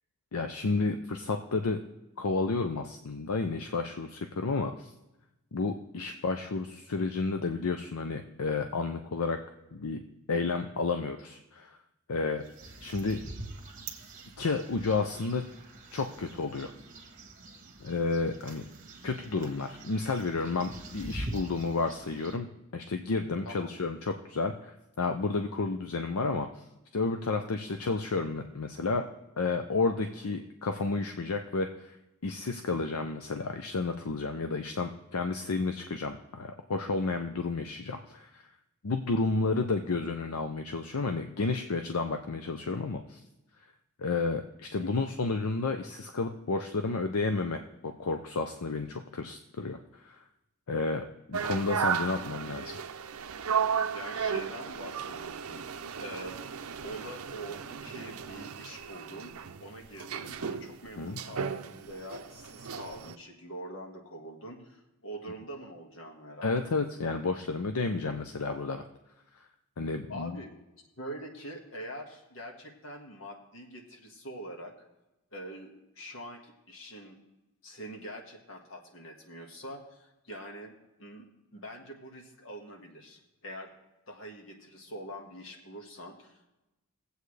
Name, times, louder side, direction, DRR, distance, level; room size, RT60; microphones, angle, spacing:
voice 1, 0.3-1.8 2.2-4.9 5.5-9.4 9.7-10.0 10.3-11.8 12.1-12.4 12.8-13.2 14.4-15.4 15.9-16.7 17.8-18.6 19.0-22.5 22.7-26.6 26.9-29.0 29.4-32.0 32.2-38.4 38.8-43.2 44.0-49.8 50.0-50.2 50.7-52.8 61.0-61.2 66.4-68.8 69.8-70.4, left 3 dB, 80° left, 6 dB, 0.6 m, -31 dB
sound 1, 12.4-22.4, right 2 dB, 35° right, 1.4 m, -44 dB
sound 2, 51.3-63.2, right 7 dB, 75° right, 0.5 m, -35 dB
voice 2, 53.9-55.6 56.0-56.4 56.8-66.8 70.1-74.7 75.3-77.2 77.6-80.7 81.0-83.7 84.1-86.5, right 1 dB, 60° left, 1 dB, 1.7 m, -44 dB
19.0 x 8.0 x 3.3 m, 0.96 s
head